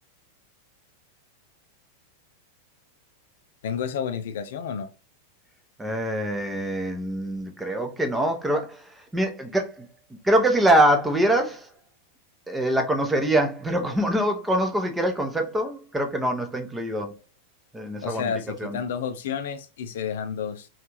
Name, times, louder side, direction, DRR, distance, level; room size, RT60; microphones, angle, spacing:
voice 1, 3.6-4.9 18.0-20.7, left 7 dB, 60° left, 0.5 m, -30 dB
voice 2, 5.8-9.9 10.2-11.7 12.5-17.1 17.7-18.3 18.6-18.8, right 1 dB, 10° right, 0.8 m, -24 dB
3.8 x 3.2 x 3.0 m
figure-of-eight pair, 90°, 0 cm